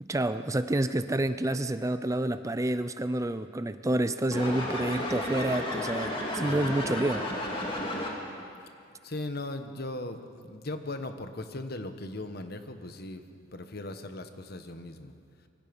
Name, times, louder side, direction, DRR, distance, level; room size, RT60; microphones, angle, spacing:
voice 1, 0.0-7.3, right 1 dB, 15° right, 12 dB, 0.5 m, -29 dB
sound 1, 4.3-8.4, left 1 dB, 25° left, 2.8 m, -33 dB
voice 2, 6.4-6.8 9.0-13.2 13.5-15.1, left 2 dB, 50° left, 8 dB, 1.4 m, -38 dB
26.0 x 23.5 x 5.4 m, 2.3 s
head